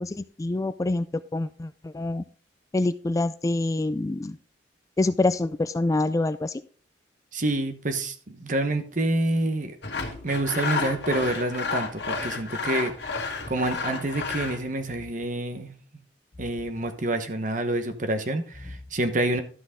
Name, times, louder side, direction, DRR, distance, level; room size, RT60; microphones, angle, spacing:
voice 1, 0.0-2.2 2.7-4.4 5.0-6.6, left 2 dB, 20° left, 0.3 m, -26 dB
voice 2, 7.3-9.7 10.2-13.2 13.5-15.7 16.4-19.4, right 2 dB, 45° right, 1.1 m, -27 dB
Sawing, 9.8-14.6, left 4 dB, 70° left, 1.6 m, -31 dB
12.5 x 6.1 x 3.7 m
head